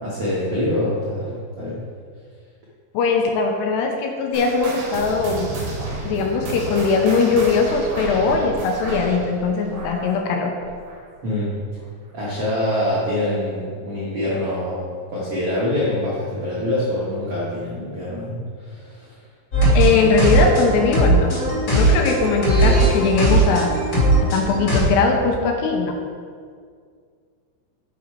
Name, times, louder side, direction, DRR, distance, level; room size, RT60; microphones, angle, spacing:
voice 1, 0.0-1.8 11.2-11.5 12.1-19.1, left 1 dB, 80° right, -7 dB, 1.3 m, -25 dB
voice 2, 2.9-5.5 6.0-10.5 19.7-21.4 21.7-23.8 24.3-25.9, left 4 dB, 80° left, 3 dB, 2.7 m, -20 dB
sound 1, 4.3-11.2 11.5-11.8 12.4-12.5 13.3-13.4, right 2 dB, 60° right, 3.5 m, -32 dB
sound 2, 19.5-24.8, right 2 dB, 35° left, 1.8 m, -18 dB
9.7 x 6.2 x 4.6 m, 2.1 s
omnidirectional pair, 5.2 m